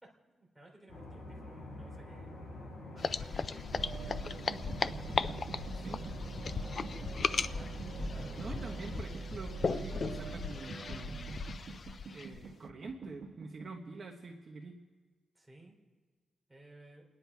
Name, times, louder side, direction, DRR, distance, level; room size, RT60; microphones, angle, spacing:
voice 1, 0.0-2.4 2.9-4.4 4.9-5.5 7.3-8.5 15.3-15.8 16.5-17.1, right 1 dB, 5° right, -2 dB, 3.2 m, -57 dB
sound 1, 0.9-9.0, left 1 dB, 60° left, 5.7 m, -46 dB
sound 2, 3.0-12.5, left 5 dB, 40° left, 0.4 m, -37 dB
sound 3, 3.7-13.7, right 3 dB, 65° right, 1.6 m, -43 dB
voice 2, 8.3-11.3 12.1-14.8, right 3 dB, 40° right, 1 dB, 1.1 m, -46 dB
30.0 x 10.0 x 4.7 m, 1.4 s
wide cardioid pair, 150°, 0 cm